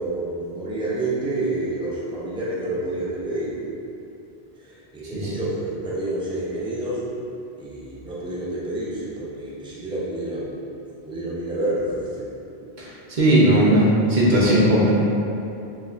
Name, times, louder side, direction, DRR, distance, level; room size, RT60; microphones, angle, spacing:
voice 1, 0.0-3.5 4.6-7.0 7.6-10.6 11.0-12.2 13.5-13.8, right 2 dB, 10° right, -8 dB, 0.4 m, -28 dB
voice 2, 13.2-14.9, right 1 dB, 55° right, -7 dB, 0.7 m, -17 dB
3.8 x 2.6 x 2.3 m, 2.8 s
omnidirectional pair, 1.0 m